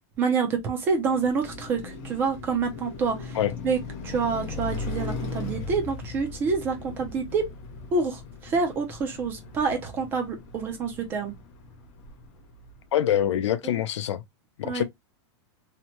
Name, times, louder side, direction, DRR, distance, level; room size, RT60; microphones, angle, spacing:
voice 1, 0.2-3.3 3.6-3.8 4.0-7.4 7.9-11.3 14.6-14.8, right 5 dB, 15° right, 0.4 m, -27 dB
Car passing by, 0.9-13.1, left 3 dB, 35° left, 0.7 m, -38 dB
voice 2, 12.9-14.2 14.6-14.8, left 11 dB, 75° left, 0.5 m, -25 dB
2.8 x 2.1 x 2.9 m
supercardioid pair, 180°, 15 cm